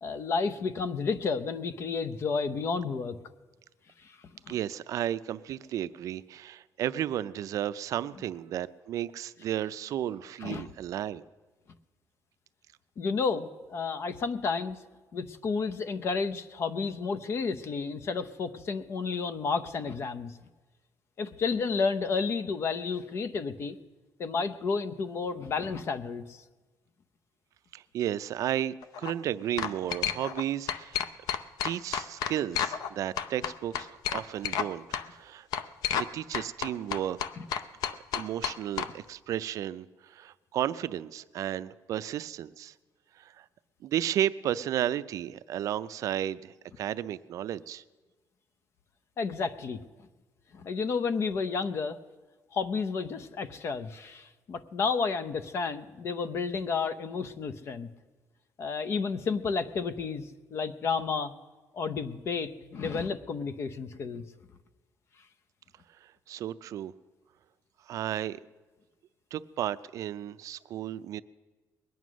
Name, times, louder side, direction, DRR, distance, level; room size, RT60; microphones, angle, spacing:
voice 1, 0.0-3.2 4.0-4.2 4.5-4.6 10.4-10.7 13.0-14.8 15.1-20.3 21.2-23.8 24.2-26.4 37.4-37.5 49.2-49.8 50.5-52.0 52.5-57.9 58.6-61.3 61.7-64.2, left 5 dB, 45° left, 13 dB, 0.7 m, -31 dB
voice 2, 4.5-11.2 27.7-31.1 31.6-34.9 35.1-35.5 35.9-37.2 38.1-42.7 43.2-43.5 43.8-47.8 66.3-66.9 67.9-68.4 69.3-71.2, right 11 dB, 60° right, 14 dB, 0.4 m, -33 dB
sound 1, 28.8-29.1 29.6-30.4 30.7-32.9 33.2-34.7 34.9-35.0 35.5-36.1 36.3-38.9, left 9 dB, 80° left, 0.6 m, -31 dB
21.0 x 9.4 x 6.2 m, 1.2 s
cardioid pair, 160°, 6 cm